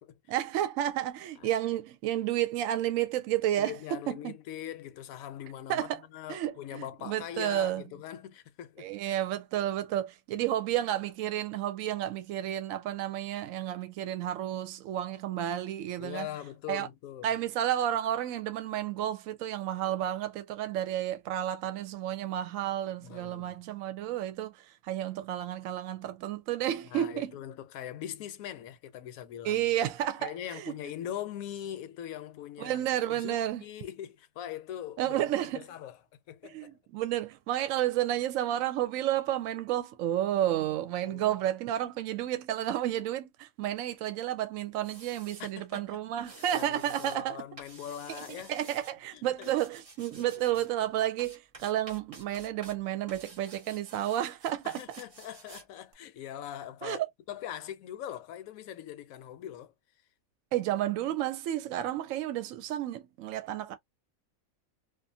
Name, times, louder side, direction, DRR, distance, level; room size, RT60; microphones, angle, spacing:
voice 1, 0.3-4.4 5.7-6.0 6.3-7.8 8.8-16.3 16.7-16.9 17.2-27.4 29.4-30.7 32.6-33.6 35.0-35.7 36.4-47.4 48.1-55.0 56.8-57.1 60.5-63.7, right 12 dB, 75° right, 0.9 m, -31 dB
voice 2, 3.6-9.1 16.0-17.3 23.0-23.6 26.9-29.6 30.2-35.3 35.5-36.0 36.3-36.7 41.0-41.3 45.4-46.0 46.4-48.5 49.1-49.5 54.6-57.0 57.3-59.7, left 11 dB, 75° left, 1.0 m, -42 dB
sound 1, 44.7-45.5 46.2-47.2 47.6-48.9 49.4-50.7 51.2-52.8 53.1-55.7 55.9-56.0, right 3 dB, 45° right, 0.4 m, -51 dB
2.5 x 2.4 x 2.6 m
omnidirectional pair, 1.5 m